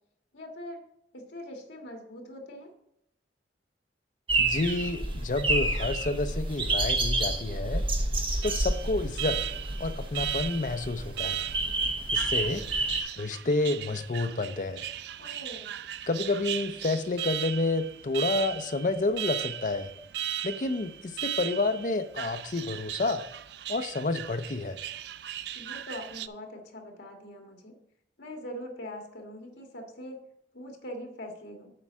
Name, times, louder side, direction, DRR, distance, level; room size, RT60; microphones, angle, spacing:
voice 1, 0.3-0.8 1.1-2.7 15.2-15.7 25.5-27.7 28.2-30.2 30.5-31.7, equal, 75° left, 2 dB, 1.7 m, -42 dB
sound 1, 4.3-13.0, right 2 dB, 30° right, 0.9 m, -29 dB
voice 2, 4.4-7.8 8.4-9.4 9.8-11.4 12.1-12.6 13.2-14.8 16.1-19.9 20.4-23.3 23.7-24.8, left 2 dB, 45° left, 9 dB, 0.6 m, -29 dB
Alarm, 8.4-26.3, right 11 dB, 60° right, 0.3 m, -37 dB
7.5 x 4.6 x 6.2 m, 0.76 s
head